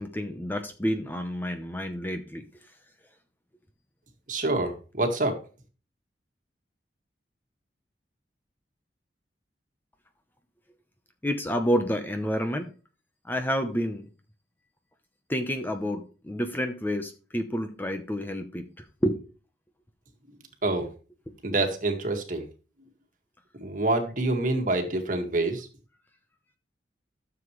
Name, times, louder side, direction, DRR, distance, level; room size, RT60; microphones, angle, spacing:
voice 1, 0.0-2.4 11.2-12.7 13.3-14.1 15.3-19.2, equal, 10° left, 6 dB, 0.9 m, -29 dB
voice 2, 4.3-5.4 20.6-20.9 21.4-22.5 23.6-25.7, right 2 dB, 45° right, 4 dB, 1.9 m, -26 dB
13.5 x 7.1 x 3.2 m, 0.35 s
head